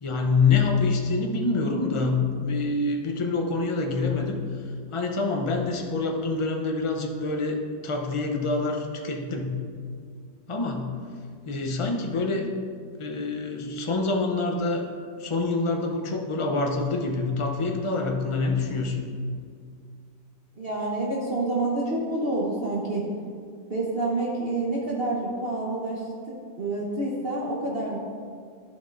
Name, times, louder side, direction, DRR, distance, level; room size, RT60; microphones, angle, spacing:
voice 1, 0.0-4.4 4.9-9.6 10.5-11.1 11.5-12.6 13.0-14.8 15.2-19.0, left 3 dB, 55° left, 2 dB, 0.3 m, -26 dB
voice 2, 20.6-23.1 23.7-28.0, right 2 dB, 40° right, -4 dB, 1.1 m, -28 dB
11.5 x 7.2 x 2.6 m, 2.1 s
omnidirectional pair, 1.8 m